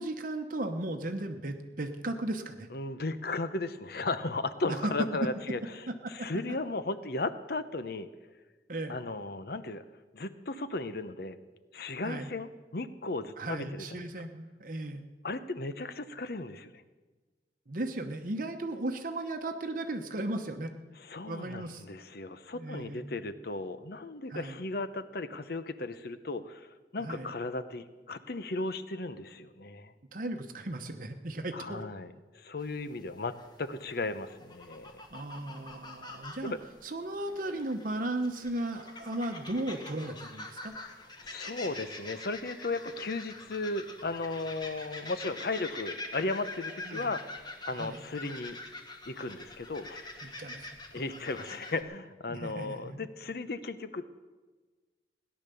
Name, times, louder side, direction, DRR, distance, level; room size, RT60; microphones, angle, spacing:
voice 1, 0.0-2.7 4.7-4.9 6.0-6.3 8.7-8.9 12.0-12.3 13.4-15.0 17.7-20.7 21.2-21.8 22.5-23.0 24.3-24.6 27.0-27.3 30.1-31.8 35.1-36.5 36.8-40.7 46.9-47.1 47.7-48.0 50.2-50.7 51.0-51.1 52.3-53.1, right 1 dB, 50° right, 5 dB, 0.9 m, -36 dB
voice 2, 2.7-5.6 6.1-8.1 8.9-9.8 10.1-11.4 11.7-14.1 15.2-16.8 21.0-29.9 31.5-35.0 36.4-36.6 41.2-48.6 49.1-50.1 50.9-54.1, left 2 dB, 55° left, 12 dB, 0.8 m, -36 dB
sound 1, 32.6-51.8, left 2 dB, 25° left, 1.3 m, -45 dB
17.5 x 10.5 x 6.9 m, 1.3 s
head